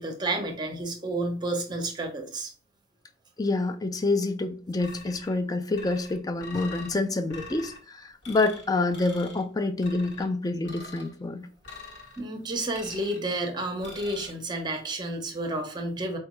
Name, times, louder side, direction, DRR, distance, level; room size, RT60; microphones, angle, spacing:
voice 1, 0.0-2.5 12.2-16.2, right 2 dB, 20° right, 0.7 m, -31 dB
voice 2, 3.4-11.5, left 2 dB, 20° left, 0.3 m, -27 dB
sound 1, 4.8-5.4 5.7-6.9 7.3-7.8 8.2-8.6 8.9-9.4 9.8-10.3 10.6-11.1 11.6-12.2 12.7-13.3 13.8-14.3, left 3 dB, 60° left, 1.2 m, -44 dB
4.6 x 2.2 x 3.0 m
head